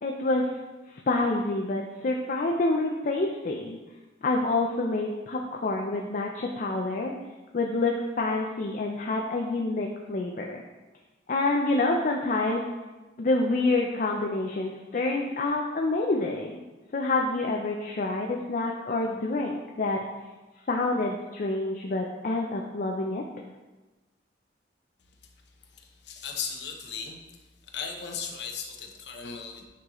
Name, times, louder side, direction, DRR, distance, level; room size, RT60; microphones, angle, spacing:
voice 1, 0.0-0.5 0.9-3.8 4.2-7.1 7.5-10.6 11.3-12.6 13.2-16.6 16.9-20.0 20.7-23.2, left 2 dB, 45° left, 1 dB, 0.5 m, -27 dB
voice 2, 25.6-29.7, left 6 dB, 65° left, 2 dB, 0.8 m, -37 dB
9.3 x 3.8 x 3.0 m, 1.2 s
head